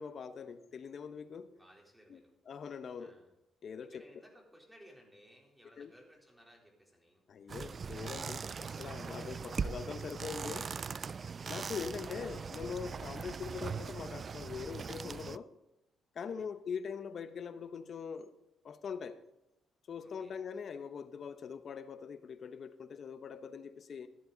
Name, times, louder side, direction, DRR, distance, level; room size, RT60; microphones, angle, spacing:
voice 1, 0.0-1.5 2.1-2.2 2.5-3.2 3.6-4.0 5.8-5.9 7.3-10.6 11.5-15.5 16.1-18.3 18.6-19.2 19.9-24.1, left 6 dB, 55° left, 11 dB, 0.9 m, -42 dB
voice 2, 1.6-2.3 3.0-3.3 3.9-7.3 10.3-11.0 16.2-16.5 20.0-20.3, equal, 5° right, -1 dB, 3.7 m, -60 dB
sound 1, 7.5-15.4, right 5 dB, 40° right, 0.3 m, -40 dB
14.5 x 11.0 x 4.0 m, 0.88 s
cardioid pair, 90°, 0 cm